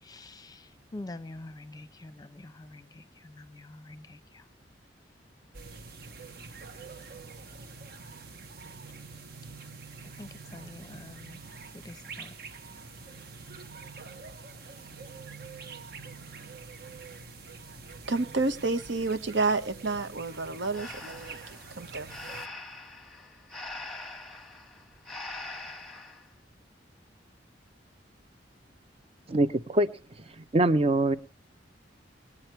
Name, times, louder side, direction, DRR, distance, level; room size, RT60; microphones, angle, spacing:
voice 1, 0.0-4.5 10.2-11.4 11.7-12.3, left 2 dB, 20° left, 0.8 m, -46 dB
sound 1, 5.5-22.5, right 4 dB, 60° right, 1.1 m, -46 dB
voice 2, 18.1-22.1, right 3 dB, 80° right, 1.0 m, -30 dB
Breathing, 20.7-26.3, left 2 dB, ahead, 1.3 m, -43 dB
voice 3, 29.3-29.9 30.4-31.2, right 1 dB, 35° right, 0.7 m, -23 dB
20.5 x 8.8 x 4.5 m
head